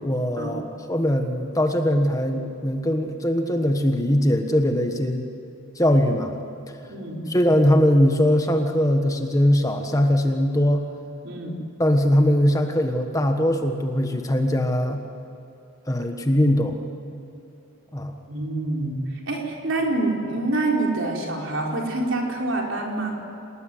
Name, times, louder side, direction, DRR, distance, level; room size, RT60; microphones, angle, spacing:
voice 1, 0.0-5.3 5.7-6.4 6.7-6.8 7.3-10.9 11.8-15.0 15.9-16.8 17.9-18.1, equal, 15° left, 5 dB, 1.3 m, -21 dB
voice 2, 6.9-7.2 11.2-11.5 18.3-19.0 19.3-23.1, right 2 dB, 60° right, 0 dB, 4.6 m, -26 dB
28.0 x 19.0 x 10.0 m, 2.9 s
head